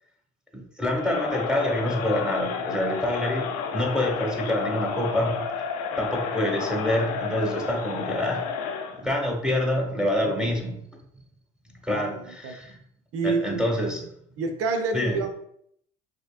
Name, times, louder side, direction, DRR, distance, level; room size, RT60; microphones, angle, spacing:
voice 1, 0.5-3.5 3.7-5.4 6.0-8.5 9.0-10.8 11.8-12.8 13.2-14.1 14.9-15.2, left 1 dB, 5° right, 1 dB, 1.3 m, -26 dB
Crowd, 0.9-9.0, left 6 dB, 55° left, 0.6 m, -31 dB
voice 2, 10.2-10.6 11.9-12.2 12.4-12.5 13.1-13.6 14.4-15.3, right 4 dB, 50° right, 6 dB, 0.7 m, -28 dB
4.9 x 3.0 x 2.3 m, 0.70 s
figure-of-eight pair, 50°, 29 cm